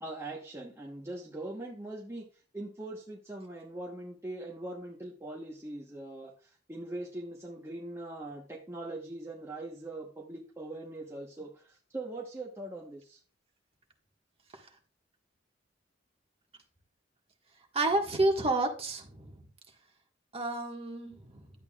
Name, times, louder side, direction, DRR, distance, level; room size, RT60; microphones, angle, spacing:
voice 1, 0.0-2.3 2.5-13.2, right 2 dB, 15° right, 1.0 m, -41 dB
voice 2, 17.7-19.3 20.3-21.4, right 2 dB, 35° right, 1.6 m, -30 dB
11.0 x 8.1 x 2.4 m
head